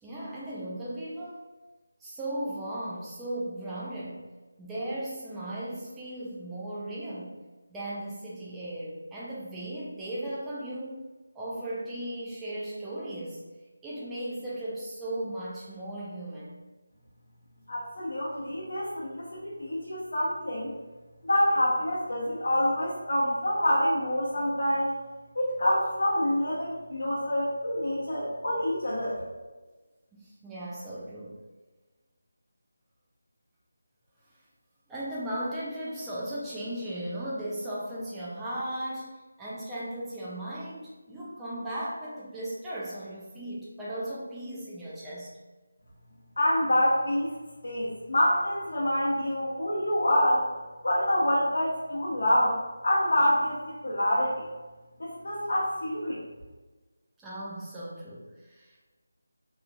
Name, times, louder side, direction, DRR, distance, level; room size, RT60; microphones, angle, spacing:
voice 1, 0.0-1.5 2.0-4.2 4.6-7.4 7.7-11.0 11.3-13.4 13.8-16.6 30.1-31.3 34.9-45.3 57.2-58.8, right 1 dB, 5° right, -8 dB, 0.3 m, -36 dB
voice 2, 17.7-20.7 21.2-24.9 25.3-29.2 46.4-47.3 47.6-50.5 50.8-54.3 55.0-56.2, left 1 dB, 70° left, -8 dB, 0.8 m, -26 dB
2.9 x 2.3 x 2.5 m, 1.2 s
figure-of-eight pair, 175°, 0 cm